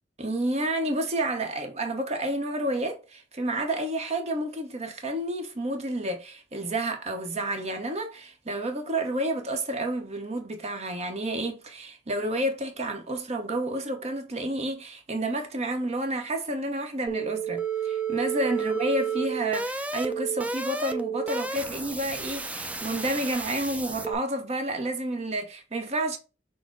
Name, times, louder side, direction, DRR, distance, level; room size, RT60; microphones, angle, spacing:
voice 1, 0.2-26.2, right 1 dB, 35° right, 0.9 m, -30 dB
sound 1, 17.1-24.1, right 6 dB, 5° right, 0.4 m, -31 dB
6.2 x 2.1 x 3.7 m
head